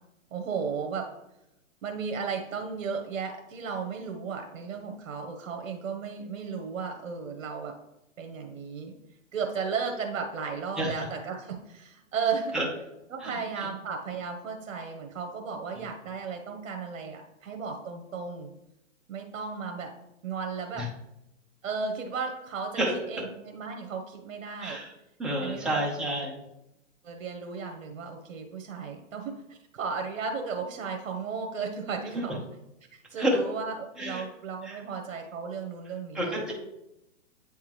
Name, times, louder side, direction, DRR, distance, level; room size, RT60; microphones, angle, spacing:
voice 1, 0.3-1.1 1.8-7.7 8.2-8.9 9.3-12.6 13.1-18.5 19.1-19.9 20.2-20.9 21.6-22.8 23.1-24.8 25.4-25.7 27.0-32.5 32.9-36.5, right 5 dB, 70° right, 4 dB, 1.0 m, -35 dB
voice 2, 25.2-26.4 32.1-32.3 33.2-33.4 34.0-34.2 34.6-34.8 36.1-36.5, right 1 dB, ahead, -3 dB, 0.7 m, -29 dB
8.5 x 3.6 x 3.1 m, 0.88 s
hypercardioid pair, 145°, 39 cm